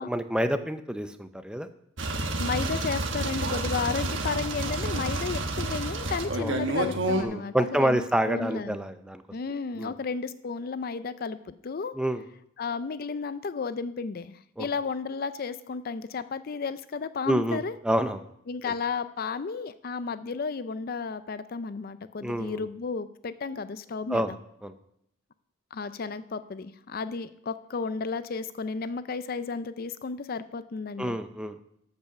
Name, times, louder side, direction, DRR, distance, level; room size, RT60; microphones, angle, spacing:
voice 1, 0.0-1.7 6.4-6.6 7.2-9.2 9.8-9.9 12.0-12.2 14.6-14.7 17.3-17.6 17.8-18.2 18.7-18.8 22.2-22.6 24.1-24.3 24.6-24.7 31.0-31.6, right 1 dB, 5° right, 9 dB, 0.5 m, -28 dB
sound 1, 2.0-7.2, right 2 dB, 75° right, 1.2 m, -29 dB
voice 2, 2.4-8.8 9.3-11.9 12.6-17.7 18.5-24.4 25.7-31.2, left 5 dB, 50° left, 13 dB, 0.5 m, -33 dB
13.5 x 5.5 x 5.9 m, 0.73 s
head